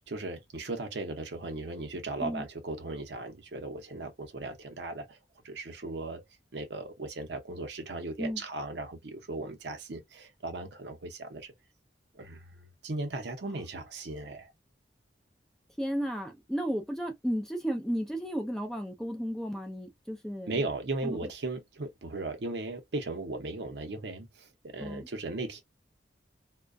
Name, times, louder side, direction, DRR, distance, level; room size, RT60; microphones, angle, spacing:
voice 1, 0.1-5.2 5.4-6.2 6.5-11.5 12.1-12.5 12.8-14.5 20.5-25.6, right 2 dB, 65° right, 0.6 m, -37 dB
voice 2, 15.8-20.6 21.0-21.2 24.8-25.1, equal, ahead, 0.3 m, -33 dB
2.3 x 2.2 x 2.4 m
head